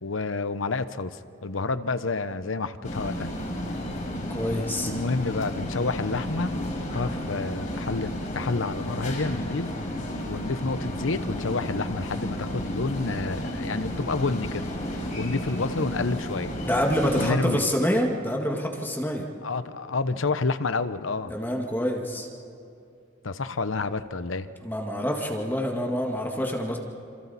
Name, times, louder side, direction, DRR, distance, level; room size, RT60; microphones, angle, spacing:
voice 1, 0.0-3.3 4.9-9.7 10.3-14.7 15.2-16.5 17.2-17.6 19.4-21.3 23.2-24.5, left 3 dB, 85° left, 12 dB, 0.9 m, -29 dB
Ica Maxi frysdiskar, 2.8-17.3, equal, 45° left, 4.3 m, -32 dB
voice 2, 4.3-4.9 16.6-19.3 21.3-22.3 24.6-26.8, equal, 10° left, 0 dB, 1.8 m, -26 dB
28.0 x 27.0 x 4.2 m, 2.6 s
head